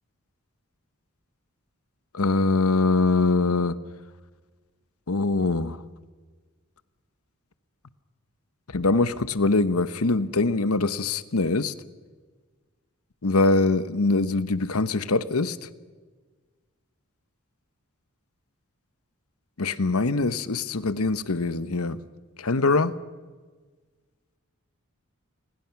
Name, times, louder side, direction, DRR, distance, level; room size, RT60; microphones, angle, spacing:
voice 1, 2.1-3.8 5.1-5.8 8.7-11.7 13.2-15.7 19.6-22.0 22.4-22.9, left 3 dB, 85° left, 14 dB, 1.1 m, -23 dB
28.5 x 21.0 x 5.9 m, 1.4 s
head